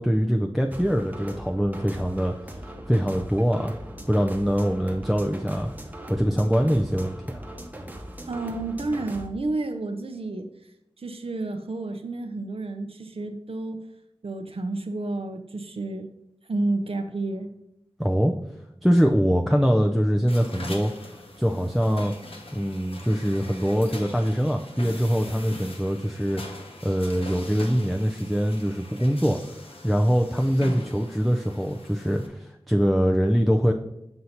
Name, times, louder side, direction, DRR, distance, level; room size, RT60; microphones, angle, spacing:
voice 1, 0.0-2.3 2.9-3.7 4.1-5.7 6.1-7.4 18.0-18.3 18.8-20.9 21.4-22.1 22.5-33.7, equal, ahead, 2 dB, 0.4 m, -23 dB
sound 1, 0.7-9.3, equal, 15° right, 0.9 m, -40 dB
voice 2, 8.3-10.7 11.0-13.9 14.2-16.1 16.5-17.5, right 2 dB, 75° right, 6 dB, 0.6 m, -30 dB
sound 2, 20.3-32.3, left 1 dB, 70° left, 1.0 m, -42 dB
7.8 x 2.7 x 5.7 m, 0.84 s
wide cardioid pair, 55°, 10 cm